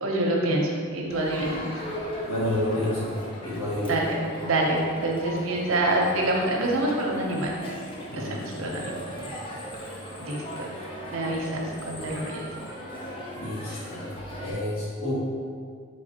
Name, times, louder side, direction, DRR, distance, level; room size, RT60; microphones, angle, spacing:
voice 1, 0.0-1.6 3.8-4.1 4.4-7.5 8.1-8.8 10.2-10.7 11.1-12.5, right 1 dB, 80° right, -1 dB, 0.6 m, -26 dB
Crowd, 1.1-14.5, equal, 25° left, 0.5 m, -38 dB
voice 2, 2.3-3.2 3.4-3.9 8.1-8.9 9.2-9.4 13.4-14.0 14.4-15.1, left 1 dB, 80° left, -7 dB, 1.2 m, -30 dB
4.1 x 3.2 x 2.8 m, 2.1 s
head